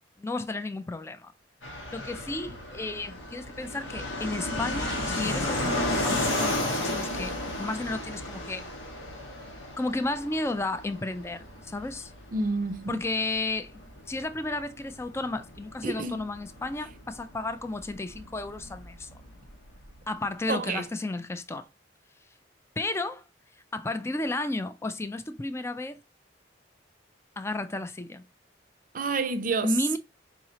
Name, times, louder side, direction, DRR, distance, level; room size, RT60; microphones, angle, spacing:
voice 1, 0.2-1.3 1.9-8.7 9.8-12.1 12.9-13.8 14.1-19.1 20.1-21.7 22.8-23.2 23.7-26.0 27.4-28.2 29.6-30.0, left 2 dB, 15° left, 0.3 m, -33 dB
Fixed-wing aircraft airplane, 1.6-20.0, left 1 dB, 90° left, 1.3 m, -34 dB
voice 2, 12.3-13.0 15.8-16.2 20.5-20.8 28.9-29.7, right 3 dB, 45° right, 0.6 m, -29 dB
4.7 x 3.0 x 2.7 m
head